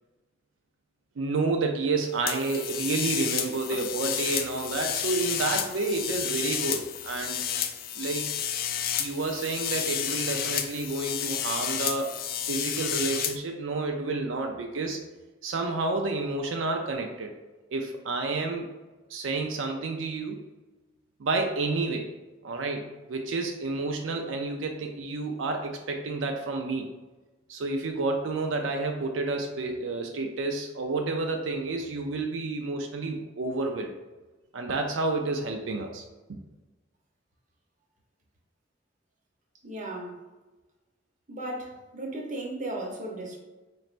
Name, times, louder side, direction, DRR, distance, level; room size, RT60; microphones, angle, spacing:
voice 1, 1.2-7.4 8.0-8.3 9.0-12.1 12.5-15.0 15.4-17.3 17.7-18.7 19.1-20.4 21.2-22.1 22.4-26.9 27.5-33.9 34.5-36.0 36.3-36.4, right 3 dB, 90° right, 3 dB, 0.4 m, -30 dB
sound 1, 2.3-13.4, left 9 dB, 50° left, 0.3 m, -31 dB
voice 2, 39.6-40.2 41.3-43.4, right 1 dB, 40° right, 0 dB, 0.8 m, -35 dB
4.1 x 3.2 x 2.5 m, 1.2 s
head